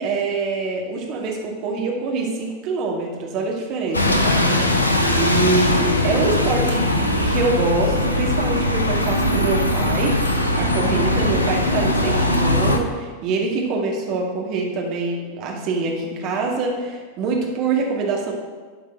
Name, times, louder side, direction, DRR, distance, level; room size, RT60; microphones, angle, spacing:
voice 1, 0.0-10.2 10.6-18.3, right 3 dB, 40° right, -1 dB, 2.1 m, -25 dB
Bus, 3.9-12.8, left 1 dB, 80° left, 0.9 m, -20 dB
11.0 x 5.0 x 6.6 m, 1.4 s
figure-of-eight pair, 90°, 0 cm